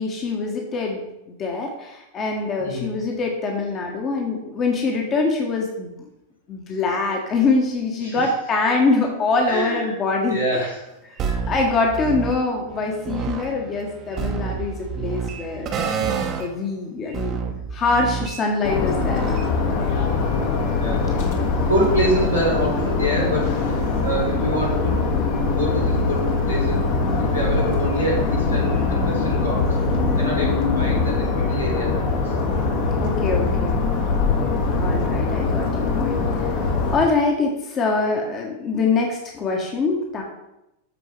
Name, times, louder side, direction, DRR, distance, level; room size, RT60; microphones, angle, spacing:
voice 1, 0.0-5.9 6.5-10.7 11.5-17.4 17.7-19.2 33.0-33.8 34.8-36.5 36.9-40.2, left 3 dB, 30° left, 1 dB, 1.3 m, -24 dB
voice 2, 2.6-3.0 8.0-8.2 9.4-9.9 10.3-10.8 11.2-11.4 11.7-11.8 20.1-24.9 25.4-26.8 27.1-29.6 30.1-32.3, equal, 85° left, -5 dB, 3.3 m, -26 dB
sound 1, 11.2-12.4 12.7-16.5 17.1-19.6, right 6 dB, 30° right, 0.9 m, -29 dB
sound 2, 18.6-37.0, left 4 dB, 50° left, 1.4 m, -22 dB
13.5 x 4.7 x 3.3 m, 0.89 s
figure-of-eight pair, 90°, 0 cm